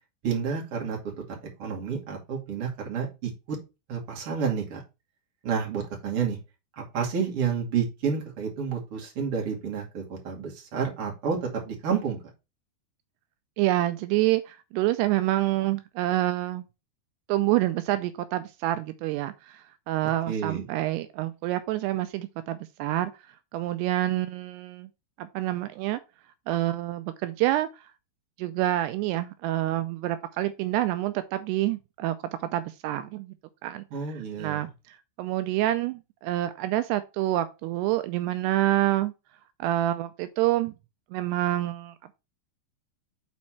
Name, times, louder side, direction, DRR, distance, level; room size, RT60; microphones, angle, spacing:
voice 1, 0.2-3.3 3.9-4.8 5.4-6.4 6.8-11.4 11.7-12.2 20.3-20.6 33.9-34.7, right 6 dB, 40° right, 2.7 m, -30 dB
voice 2, 13.6-16.7 17.3-23.1 23.5-24.9 25.2-26.0 26.5-27.9 28.4-33.3 33.6-39.1 39.6-40.7 41.1-42.1, right 15 dB, 85° right, 2.6 m, -27 dB
6.3 x 4.2 x 5.8 m
omnidirectional pair, 4.7 m